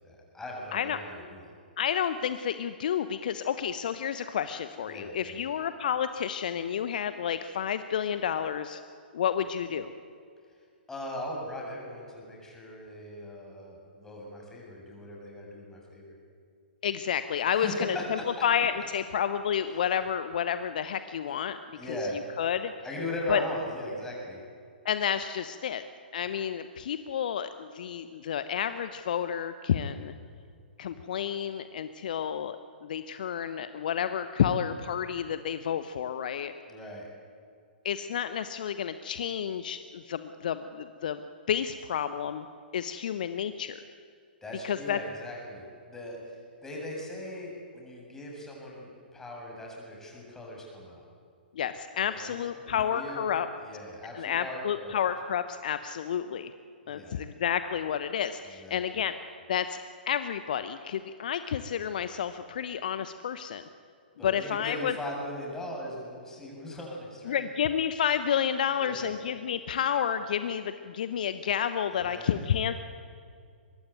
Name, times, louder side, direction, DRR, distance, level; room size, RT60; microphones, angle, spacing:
voice 1, 0.0-1.4 4.9-5.5 10.9-16.2 17.5-18.4 21.8-22.2 22.8-24.4 36.7-37.1 44.4-46.4 46.6-51.0 52.0-53.2 53.6-55.0 56.8-57.2 58.5-59.0 64.2-67.5 68.7-69.1 71.9-72.4, left 1 dB, 10° left, -2 dB, 7.6 m, -39 dB
voice 2, 1.8-8.8 9.1-9.9 16.8-22.0 22.4-22.7 23.3-23.4 24.8-25.8 26.1-30.1 30.8-36.5 37.8-41.2 41.5-42.5 42.7-43.8 44.6-45.0 51.5-53.5 54.1-56.5 56.9-59.1 59.5-59.8 60.1-63.6 64.2-64.9 67.3-72.8, left 8 dB, 50° left, 11 dB, 0.9 m, -30 dB
23.5 x 22.0 x 9.3 m, 2.3 s
figure-of-eight pair, 115°, 6 cm